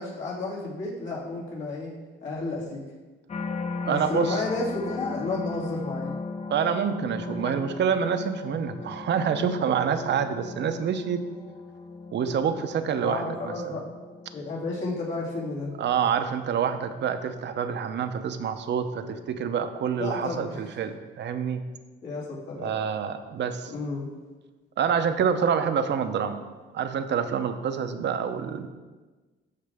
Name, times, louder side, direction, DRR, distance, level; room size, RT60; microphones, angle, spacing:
voice 1, 0.0-1.9 2.2-2.8 3.8-6.1 13.0-13.8 14.3-15.7 20.0-20.6 22.0-22.7 23.7-24.1, left 2 dB, 70° left, -5 dB, 2.8 m, -32 dB
sound 1, 3.3-18.5 19.0-19.4, left 4 dB, 35° left, 0.6 m, -38 dB
voice 2, 3.8-4.4 6.5-11.2 12.1-13.8 15.8-21.6 22.6-23.7 24.8-26.4 26.7-28.7, right 7 dB, 65° right, 9 dB, 0.7 m, -27 dB
13.0 x 5.0 x 3.5 m, 1.3 s
cardioid pair, 90°, 20 cm